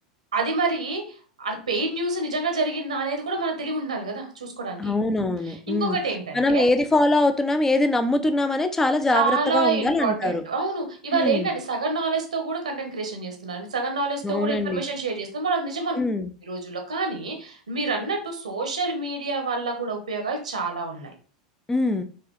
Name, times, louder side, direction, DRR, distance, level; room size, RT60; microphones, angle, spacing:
voice 1, 0.3-1.0 1.4-5.0 5.4-6.7 9.1-16.0 16.5-21.1, right 3 dB, 75° right, 4 dB, 1.0 m, -27 dB
voice 2, 4.8-6.0 6.3-10.4 11.1-11.5 14.2-14.8 16.0-16.3 21.7-22.0, left 2 dB, 10° left, 9 dB, 0.5 m, -23 dB
4.7 x 3.0 x 3.1 m, 0.40 s
figure-of-eight pair, 85°, 4 cm